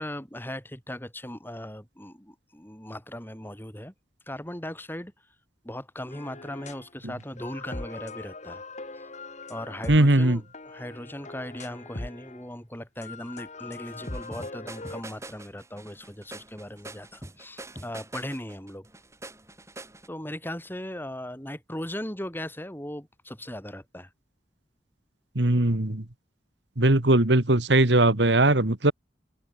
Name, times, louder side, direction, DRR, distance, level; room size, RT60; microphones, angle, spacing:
voice 1, 0.0-3.9 4.3-5.1 5.6-8.6 8.9-9.0 9.5-18.9 20.1-24.1, left 1 dB, 10° left, 7.5 m, -38 dB
sound 1, 6.1-6.9 7.2-12.5 13.0-15.0, left 2 dB, 40° left, 2.2 m, -41 dB
voice 2, 9.9-10.4 25.4-26.0 26.8-28.9, right 2 dB, 70° right, 2.0 m, -20 dB
sound 2, 13.9-20.1, right 2 dB, 15° right, 5.0 m, -44 dB
open air
head